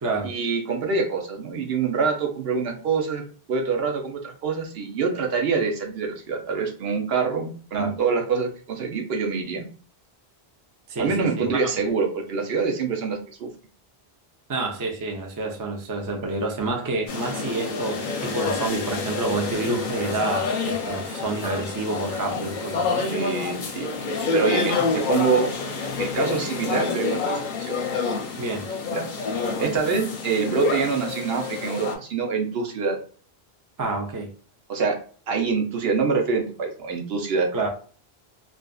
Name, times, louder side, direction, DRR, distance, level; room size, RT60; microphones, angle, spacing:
voice 1, 0.2-3.2 3.5-9.7 11.0-13.5 22.3-22.4 23.0-25.5 26.0-27.7 28.9-29.1 29.6-33.0 34.7-35.0 35.3-37.5, right 5 dB, 75° right, 3 dB, 0.9 m, -25 dB
voice 2, 10.9-11.7 14.5-23.0 24.8-24.9 28.4-28.7 33.8-34.3 37.5-37.7, right 2 dB, 30° right, 2 dB, 0.3 m, -28 dB
sound 1, 17.1-32.0, left 4 dB, 55° left, 0.6 m, -28 dB
2.5 x 2.4 x 2.2 m, 0.43 s
omnidirectional pair, 1.1 m